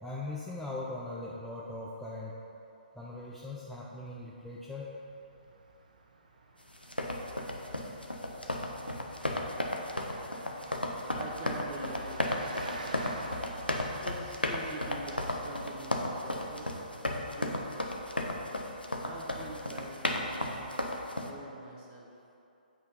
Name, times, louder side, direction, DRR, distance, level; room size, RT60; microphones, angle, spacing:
voice 1, 0.0-2.3 3.0-4.9, left 2 dB, ahead, -7 dB, 0.4 m, -40 dB
Car passing by, 4.2-17.4, right 3 dB, 55° right, 0.7 m, -49 dB
sound 1, 6.7-21.3, left 1 dB, 85° left, 0.7 m, -34 dB
voice 2, 11.1-12.6 14.0-16.8 17.2-17.7 19.0-22.1, right 2 dB, 25° right, -1 dB, 1.0 m, -45 dB
8.0 x 4.3 x 5.3 m, 2.7 s
figure-of-eight pair, 130°, 5 cm